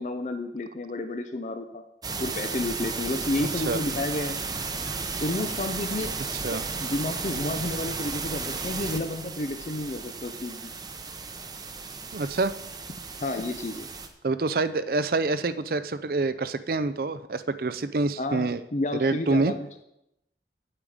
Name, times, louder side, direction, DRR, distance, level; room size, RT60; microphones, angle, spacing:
voice 1, 0.0-1.8 2.2-4.4 5.2-6.1 6.8-10.7 13.2-13.9 18.2-19.7, left 2 dB, 40° left, 7 dB, 0.5 m, -31 dB
sound 1, 2.0-14.1, right 4 dB, 20° right, 0.8 m, -34 dB
voice 2, 12.1-12.5 14.2-18.6 18.9-19.5, right 3 dB, 55° right, 13 dB, 0.5 m, -26 dB
8.9 x 8.7 x 4.9 m, 0.83 s
head